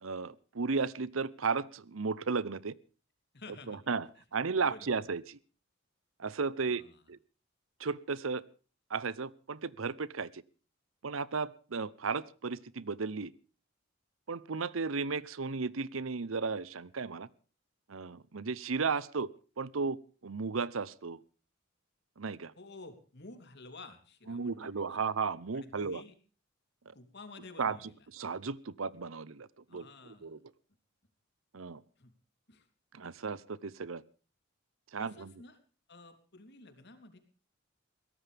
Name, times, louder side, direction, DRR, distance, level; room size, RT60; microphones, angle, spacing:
voice 1, 0.0-2.7 3.7-5.4 6.2-6.8 7.1-7.2 7.8-8.4 8.9-10.4 11.0-13.3 14.3-17.3 17.9-19.3 19.6-20.0 20.2-21.2 22.2-22.5 24.3-26.0 26.9-27.0 27.6-27.8 28.1-29.9 30.2-30.4 31.5-31.8 32.9-34.0 34.9-35.3, right 4 dB, 80° right, 20 dB, 0.8 m, -34 dB
voice 2, 3.3-3.9 4.6-5.0 6.7-7.0 22.6-25.1 25.5-26.1 26.9-28.1 29.7-30.4 32.0-32.1 32.5-32.7 35.0-35.6 35.9-37.2, left 3 dB, 55° left, 7 dB, 3.3 m, -52 dB
22.0 x 17.5 x 3.5 m, 0.36 s
head